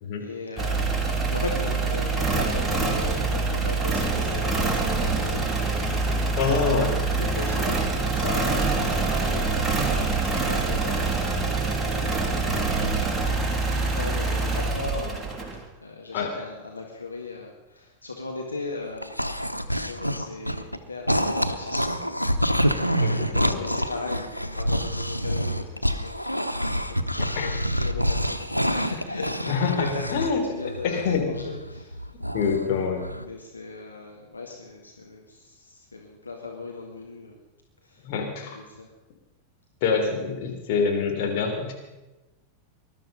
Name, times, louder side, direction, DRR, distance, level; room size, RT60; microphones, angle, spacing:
voice 1, 0.2-5.5 6.3-13.0 13.5-15.3 15.8-22.5 22.9-32.0 33.2-37.4 37.8-38.1 38.5-38.9, left 3 dB, 80° left, 1 dB, 1.8 m, -38 dB
sound 1, 0.6-15.6, right 3 dB, 10° right, 3.0 m, -25 dB
voice 2, 6.4-6.9 16.1-16.3 23.0-23.6 27.2-27.5 29.5-30.4 30.8-31.3 32.3-33.0 38.0-38.6 39.8-41.7, left 5 dB, 50° left, 2 dB, 3.5 m, -26 dB
sound 2, 18.8-20.8 21.1-30.3 30.6-32.7 33.0-33.3, equal, 90° right, 0.8 m, -27 dB
20.0 x 12.5 x 5.5 m, 1.1 s
figure-of-eight pair, 90°, 0 cm